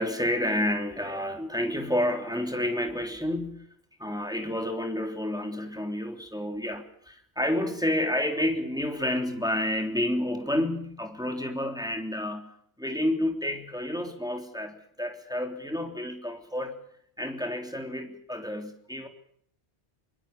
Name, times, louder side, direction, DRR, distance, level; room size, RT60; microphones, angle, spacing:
voice 1, 0.0-3.6 4.0-12.5 12.8-16.8 17.2-19.1, left 1 dB, 5° right, 4 dB, 3.2 m, -30 dB
24.0 x 23.0 x 7.1 m, 0.66 s
omnidirectional pair, 1.1 m